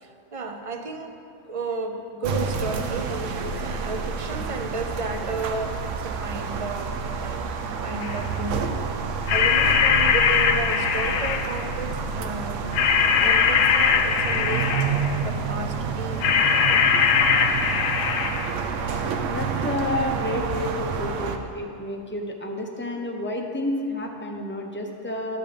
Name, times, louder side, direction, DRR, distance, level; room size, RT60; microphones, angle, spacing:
voice 1, 0.0-1.2 1.4-7.4 7.8-9.0 9.3-12.6 13.2-14.7 15.1-17.1 18.5-18.7, right 3 dB, 35° right, 5 dB, 0.6 m, -33 dB
sound 1, 2.2-21.4, right 5 dB, 80° right, 1.0 m, -29 dB
sound 2, 8.0-8.2 9.3-11.6 12.7-15.2 16.2-18.5, left 7 dB, 85° left, 1.0 m, -21 dB
voice 2, 19.2-25.4, left 1 dB, 10° left, 1 dB, 0.7 m, -30 dB
11.5 x 7.0 x 5.1 m, 2.5 s
omnidirectional pair, 1.3 m